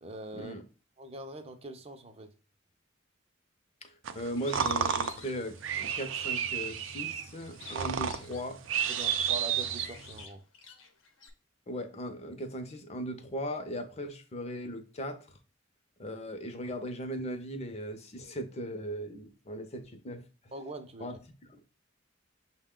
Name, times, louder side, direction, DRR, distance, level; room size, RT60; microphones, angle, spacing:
voice 1, 0.0-0.5 1.0-2.3 8.9-10.4 20.5-21.2, right 2 dB, 30° right, 0.6 m, -43 dB
voice 2, 3.8-8.6 11.7-15.4 16.0-20.5 21.0-21.2 21.5-21.6, equal, 35° left, 0.6 m, -38 dB
sound 1, 4.0-10.3, right 8 dB, 80° right, 0.4 m, -32 dB
Bird, 4.4-6.3 6.8-11.3, left 5 dB, 85° left, 0.8 m, -50 dB
6.4 x 2.2 x 3.7 m
head